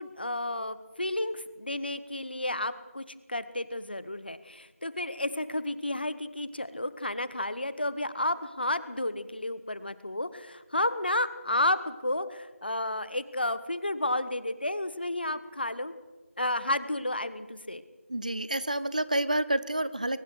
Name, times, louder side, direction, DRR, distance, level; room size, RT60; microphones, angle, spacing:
voice 1, 0.0-15.9 16.4-17.8, left 1 dB, 45° left, 14 dB, 1.2 m, -31 dB
voice 2, 18.1-20.2, right 1 dB, 35° right, 16 dB, 0.7 m, -29 dB
22.5 x 19.5 x 6.5 m, 1.2 s
figure-of-eight pair, 175°, 8 cm